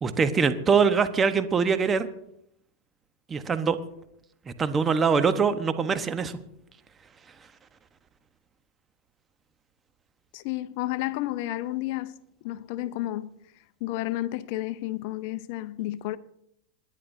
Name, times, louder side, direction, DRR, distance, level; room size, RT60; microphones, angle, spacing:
voice 1, 0.0-2.1 3.3-3.8 4.6-6.3, right 5 dB, 20° right, 1.1 m, -23 dB
voice 2, 10.3-12.1 12.4-13.3 13.8-16.2, left 16 dB, 55° left, 0.6 m, -31 dB
27.0 x 11.0 x 2.7 m
hypercardioid pair, 105°, 0 cm